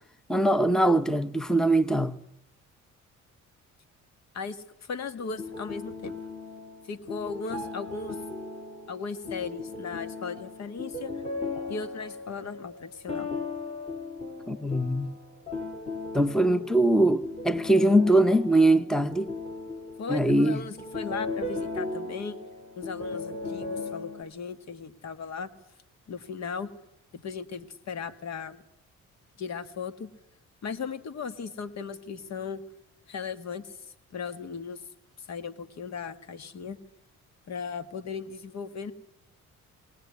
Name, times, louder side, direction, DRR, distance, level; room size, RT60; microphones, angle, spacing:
voice 1, 0.3-2.2 14.5-15.2 16.1-19.3 20.1-20.6, right 1 dB, ahead, 0.9 m, -22 dB
voice 2, 4.3-6.1 6.8-8.2 8.9-11.2 11.7-13.3 20.0-22.4 22.8-25.5 26.1-26.7 27.1-28.6 29.4-30.1 30.6-32.6 33.1-33.8 34.1-34.8 35.2-36.8 37.5-38.9, left 5 dB, 60° left, 1.8 m, -37 dB
sound 1, 5.2-24.2, left 3 dB, 20° left, 5.3 m, -37 dB
21.5 x 18.5 x 9.6 m
cardioid pair, 90°, 30 cm